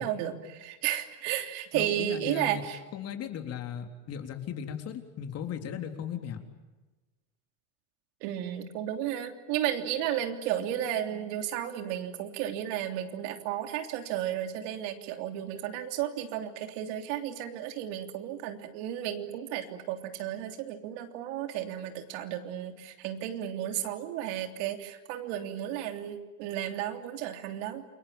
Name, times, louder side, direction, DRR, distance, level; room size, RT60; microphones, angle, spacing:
voice 1, 0.0-2.8 8.2-27.8, right 11 dB, 70° right, 6 dB, 3.4 m, -33 dB
voice 2, 1.7-2.6 2.9-6.4, left 8 dB, 40° left, 6 dB, 3.7 m, -37 dB
29.0 x 22.0 x 8.8 m, 1.2 s
supercardioid pair, 135°, 37 cm